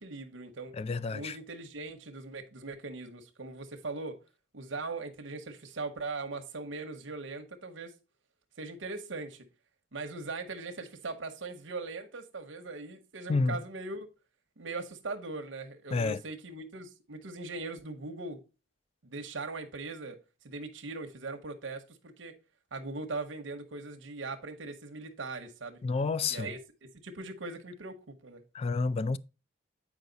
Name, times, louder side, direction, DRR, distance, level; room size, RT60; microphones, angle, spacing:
voice 1, 0.0-0.7 1.1-4.2 4.5-7.9 8.6-9.4 9.9-14.1 14.6-18.4 19.0-20.2 20.4-22.3 22.7-25.8 26.3-28.4, right 3 dB, 80° right, 0.9 m, -40 dB
voice 2, 0.7-1.4 13.3-13.6 15.9-16.2 25.8-26.5 28.5-29.2, left 4 dB, 30° left, 0.3 m, -29 dB
8.2 x 4.9 x 3.9 m
head